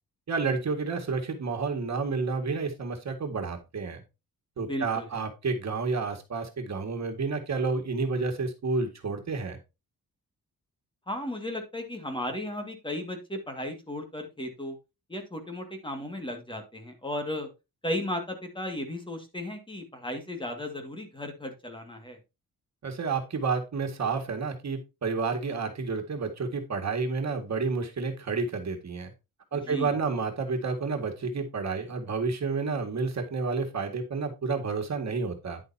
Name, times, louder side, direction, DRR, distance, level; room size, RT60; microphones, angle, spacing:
voice 1, 0.3-4.0 4.6-9.6 22.8-29.1 29.5-35.6, right 4 dB, 50° right, 5 dB, 2.0 m, -30 dB
voice 2, 4.7-5.2 11.1-14.8 15.1-17.5 17.8-22.2 29.6-30.0, left 1 dB, 15° left, 4 dB, 2.0 m, -35 dB
10.5 x 7.8 x 2.8 m, 0.26 s
wide cardioid pair, 175°, 35 cm